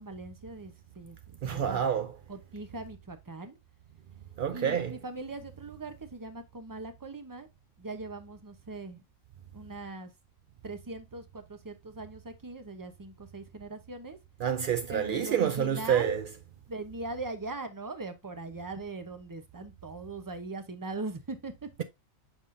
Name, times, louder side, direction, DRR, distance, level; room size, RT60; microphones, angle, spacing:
voice 1, 0.0-1.9 2.3-3.6 4.5-7.5 7.8-9.0 9.5-10.1 10.6-14.2 14.9-16.2 16.7-21.7, right 2 dB, 20° right, 0.5 m, -40 dB
voice 2, 1.4-2.1 4.4-4.9 14.4-16.2, right 8 dB, 85° right, 0.4 m, -28 dB
7.1 x 5.5 x 2.5 m
omnidirectional pair, 1.4 m